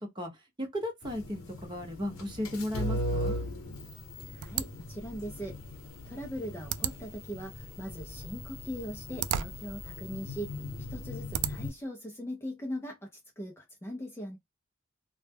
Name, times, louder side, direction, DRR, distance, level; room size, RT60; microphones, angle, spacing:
voice 1, 0.6-3.4, left 1 dB, 20° right, 0.8 m, -35 dB
sound 1, 1.0-11.7, left 1 dB, 90° left, 0.7 m, -39 dB
voice 2, 4.3-5.6 6.1-10.6 10.9-14.4, equal, 10° left, 0.4 m, -40 dB
sound 2, 4.4-11.9, right 10 dB, 90° right, 0.3 m, -39 dB
2.1 x 2.0 x 3.3 m
head